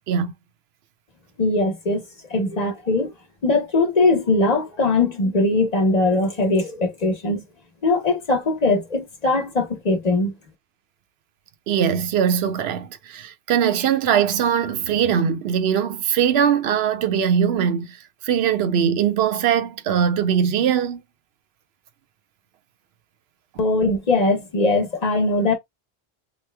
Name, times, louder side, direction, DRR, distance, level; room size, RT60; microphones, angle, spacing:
voice 1, 1.4-2.0 2.3-3.1 3.4-7.4 7.8-10.3 23.6-25.5, left 2 dB, 40° left, 1.0 m, -20 dB
voice 2, 11.7-18.0 18.2-21.0, right 8 dB, 85° right, 0.8 m, -21 dB
3.0 x 2.2 x 3.2 m
omnidirectional pair, 1.0 m